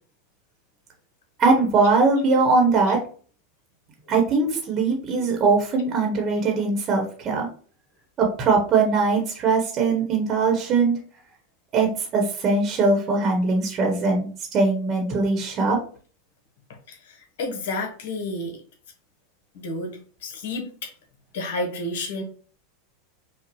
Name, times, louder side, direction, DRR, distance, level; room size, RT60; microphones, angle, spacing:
voice 1, 1.4-3.0 4.1-7.5 8.2-11.0 11.7-15.8, right 4 dB, 40° right, 1 dB, 1.1 m, -21 dB
voice 2, 16.9-18.6 19.5-20.9 21.3-22.2, left 2 dB, 70° left, 3 dB, 1.2 m, -31 dB
5.2 x 2.3 x 3.1 m, 0.43 s
hypercardioid pair, 110°, 0 cm